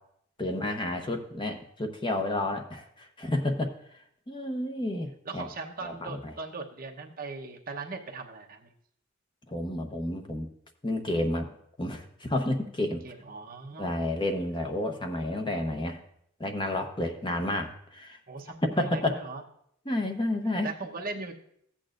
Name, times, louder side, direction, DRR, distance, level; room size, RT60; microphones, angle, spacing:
voice 1, 0.4-3.7 4.3-5.5 5.8-6.3 9.5-10.5 10.8-11.5 11.8-13.0 13.8-16.0 16.4-18.2 18.8-19.2 19.9-20.7, left 1 dB, 20° left, 4 dB, 0.9 m, -30 dB
voice 2, 5.2-8.7 13.0-13.9 14.5-14.7 18.3-19.4 20.6-21.3, right 3 dB, 40° right, 1 dB, 1.0 m, -39 dB
14.5 x 8.7 x 2.5 m, 0.71 s
head